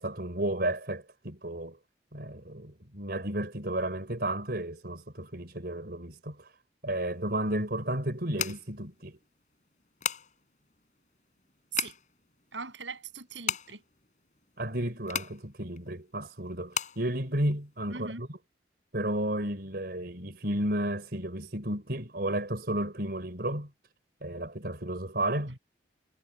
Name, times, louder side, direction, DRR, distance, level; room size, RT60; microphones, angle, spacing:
voice 1, 0.0-1.8 2.1-6.5 6.8-9.2 14.6-18.4 18.9-23.7 24.2-25.5, right 1 dB, 55° right, 4.6 m, -32 dB
sound 1, 7.0-18.1, left 8 dB, 40° left, 6.3 m, -38 dB
voice 2, 12.5-13.8 17.9-18.2 25.5-25.6, right 5 dB, 85° right, 7.0 m, -40 dB
head